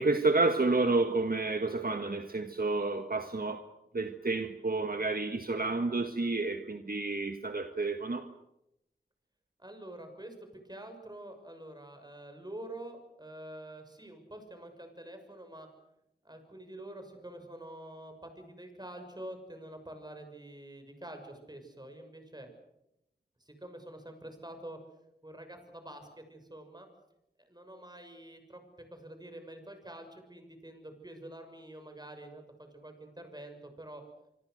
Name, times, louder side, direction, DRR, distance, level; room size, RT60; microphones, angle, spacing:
voice 1, 0.0-3.6 3.9-8.3, right 3 dB, 60° right, 6 dB, 1.6 m, -30 dB
voice 2, 9.6-10.3 10.6-15.7 16.2-22.5 23.4-24.8 25.2-26.9 27.4-28.6 28.9-34.0, right 1 dB, 25° right, 6 dB, 6.5 m, -47 dB
25.5 x 25.5 x 6.6 m, 0.84 s
wide cardioid pair, 60°, 17 cm